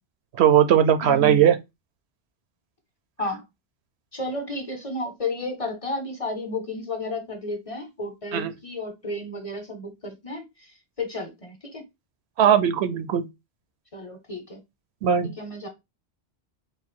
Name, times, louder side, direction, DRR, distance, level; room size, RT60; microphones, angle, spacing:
voice 1, 0.4-1.6 8.3-8.5 12.4-13.3 15.0-15.3, right 9 dB, 75° right, 0.9 m, -18 dB
voice 2, 1.0-1.5 3.2-3.4 4.1-11.8 13.9-14.6 15.2-15.7, left 2 dB, 35° left, 0.9 m, -32 dB
3.7 x 2.3 x 4.4 m
omnidirectional pair, 1.1 m